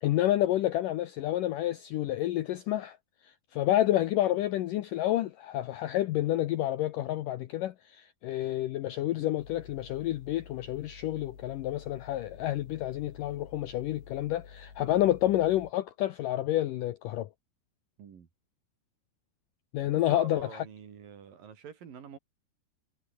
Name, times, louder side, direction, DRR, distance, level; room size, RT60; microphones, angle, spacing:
voice 1, 0.0-3.0 3.5-17.3 19.7-20.5, left 14 dB, 90° left, 1.9 m, -29 dB
sound 1, 9.4-15.7, left 6 dB, 65° left, 6.9 m, -51 dB
voice 2, 18.0-18.3 20.1-22.2, right 7 dB, 55° right, 4.4 m, -46 dB
omnidirectional pair, 5.0 m